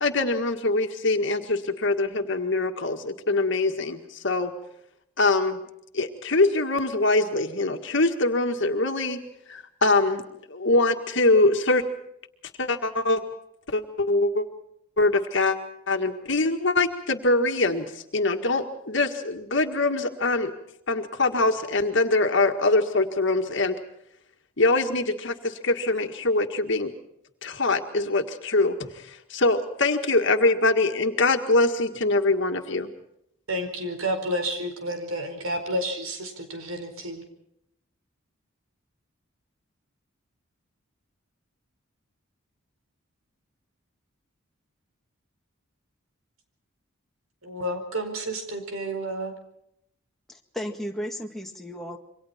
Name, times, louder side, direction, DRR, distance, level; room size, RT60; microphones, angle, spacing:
voice 1, 0.0-4.5 5.2-5.6 5.9-9.2 9.5-10.2 10.5-11.8 12.6-13.2 13.7-14.5 15.0-15.6 15.9-20.5 20.9-23.8 24.6-26.9 27.4-32.9, left 2 dB, 60° left, 5 dB, 1.8 m, -23 dB
voice 2, 33.5-37.2 47.4-49.3, right 1 dB, 80° right, 6 dB, 4.7 m, -30 dB
voice 3, 50.3-52.0, equal, ahead, 2 dB, 1.9 m, -34 dB
27.5 x 24.0 x 4.4 m, 0.77 s
head